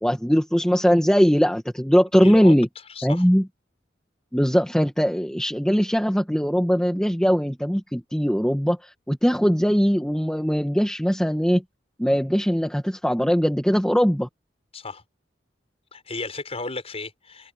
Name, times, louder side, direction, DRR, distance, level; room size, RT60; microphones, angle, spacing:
voice 1, 0.0-2.7 3.0-3.5 4.3-11.6 12.0-14.3, equal, 5° left, 1.9 m, -20 dB
voice 2, 2.2-2.5 2.9-3.2 14.7-15.0 15.9-17.5, left 3 dB, 35° left, 6.4 m, -34 dB
head